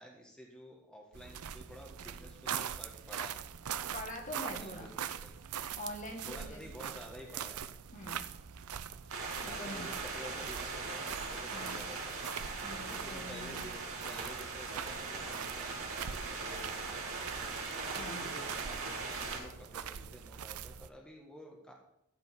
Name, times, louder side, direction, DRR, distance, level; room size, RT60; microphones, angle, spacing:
voice 1, 0.0-3.4 4.4-5.4 6.3-7.6 9.4-12.3 12.9-21.7, equal, 5° left, 0 dB, 1.6 m, -51 dB
sound 1, 1.1-20.9, right 8 dB, 90° right, 0.6 m, -43 dB
voice 2, 3.9-4.9 5.8-6.6 7.9-8.3 9.4-9.9 11.5-11.8 12.6-13.7 18.0-18.3, left 1 dB, 35° left, 2 dB, 1.8 m, -44 dB
sound 2, 9.1-19.4, right 4 dB, 65° right, 3.9 m, -40 dB
13.5 x 5.3 x 8.3 m, 0.79 s
head